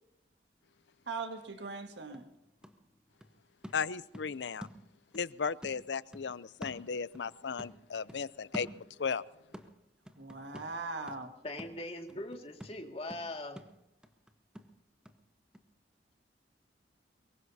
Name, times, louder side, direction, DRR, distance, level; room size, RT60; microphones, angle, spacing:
voice 1, 1.1-2.3 10.2-11.3, right 4 dB, 80° right, 1.7 m, -40 dB
sound 1, 2.1-5.3 5.6-7.3 7.6-9.2 9.5-15.2 15.5-15.6, equal, 5° right, 1.0 m, -49 dB
voice 2, 3.7-4.7 5.1-8.7 9.0-9.2, left 6 dB, 85° left, 0.6 m, -35 dB
voice 3, 11.4-13.6, left 1 dB, 35° left, 2.1 m, -41 dB
23.5 x 22.0 x 2.8 m
head